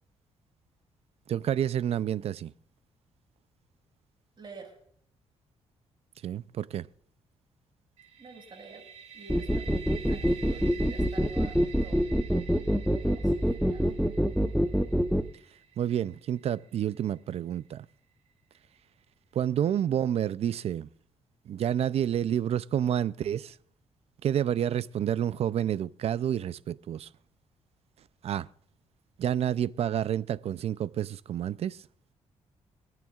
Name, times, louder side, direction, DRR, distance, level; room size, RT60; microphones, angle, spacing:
voice 1, 1.3-2.5 6.2-6.9 15.8-17.9 19.3-20.9 21.5-23.6 24.2-27.1 28.2-28.5 29.2-31.8, right 10 dB, 60° right, 0.5 m, -29 dB
voice 2, 4.4-4.8 8.2-8.8 9.1-12.0 13.0-13.9, right 3 dB, 40° right, 5.8 m, -48 dB
sound 1, 8.0-17.7, right 8 dB, 85° right, 4.9 m, -49 dB
sound 2, 9.3-15.2, equal, ahead, 0.8 m, -25 dB
26.0 x 9.1 x 2.4 m
cardioid pair, 90°, 12 cm